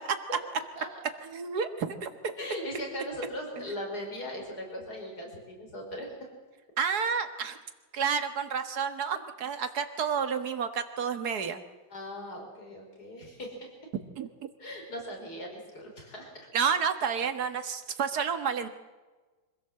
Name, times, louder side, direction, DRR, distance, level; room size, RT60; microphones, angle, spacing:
voice 1, 1.3-2.3 6.8-7.6 7.9-11.6 14.2-14.3 16.5-18.7, right 6 dB, 50° right, 9 dB, 2.0 m, -30 dB
voice 2, 2.4-6.1 11.9-13.7 14.6-16.3, equal, 50° left, 2 dB, 5.7 m, -39 dB
25.5 x 16.0 x 7.7 m, 1.3 s
omnidirectional pair, 2.2 m